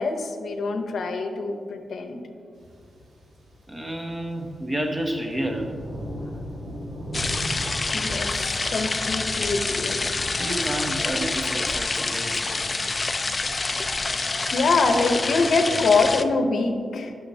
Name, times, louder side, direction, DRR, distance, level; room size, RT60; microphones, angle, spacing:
voice 1, 0.0-2.2 7.9-10.1 14.5-17.1, left 3 dB, 70° left, 5 dB, 0.7 m, -24 dB
sound 1, 2.5-11.0, equal, 85° right, 1.7 m, -38 dB
voice 2, 3.7-5.8 6.2-6.4 10.4-12.7, right 1 dB, 15° right, 4 dB, 0.7 m, -30 dB
sound 2, 7.1-16.2, left 3 dB, 30° left, 0.3 m, -27 dB
11.0 x 6.0 x 2.8 m, 2.3 s
wide cardioid pair, 115°, 0 cm